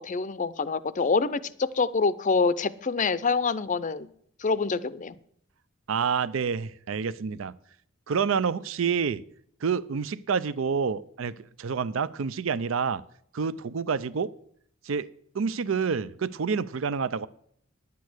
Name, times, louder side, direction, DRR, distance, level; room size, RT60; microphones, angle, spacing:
voice 1, 0.0-4.1 4.4-5.2, left 4 dB, 40° left, 16 dB, 0.5 m, -26 dB
voice 2, 5.9-7.5 8.1-9.2 9.6-13.0 13.3-14.3 14.9-15.1 15.3-17.3, right 6 dB, 70° right, 18 dB, 0.5 m, -28 dB
10.5 x 8.5 x 6.2 m, 0.66 s
head